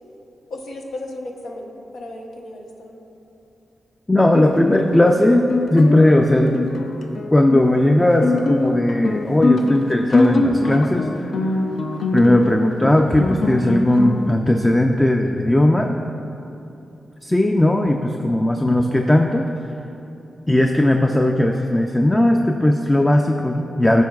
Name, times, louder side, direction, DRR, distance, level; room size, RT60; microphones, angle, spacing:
voice 1, 0.5-2.9, left 1 dB, 85° left, 0 dB, 1.0 m, -34 dB
voice 2, 4.1-6.6 7.3-11.6 12.1-15.9 17.2-19.4 20.5-24.0, left 1 dB, 15° left, 3 dB, 0.4 m, -17 dB
Guitar, 4.3-14.3, left 2 dB, 65° left, 0.6 m, -23 dB
15.0 x 5.2 x 2.4 m, 2.9 s
cardioid pair, 75°, 0 cm